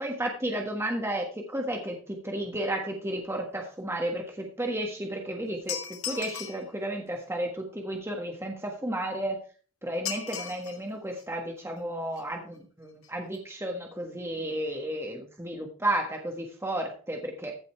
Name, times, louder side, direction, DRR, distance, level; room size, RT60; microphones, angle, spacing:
voice 1, 0.0-5.8 6.0-9.4 9.8-17.6, right 1 dB, 10° right, 2 dB, 1.5 m, -32 dB
sound 1, 5.7-6.7 10.1-10.8 11.2-11.3 12.1-12.2 12.5-12.6 12.9-13.1 13.3-13.4, left 8 dB, 75° left, 1.9 m, -36 dB
15.0 x 5.5 x 4.5 m, 0.40 s
head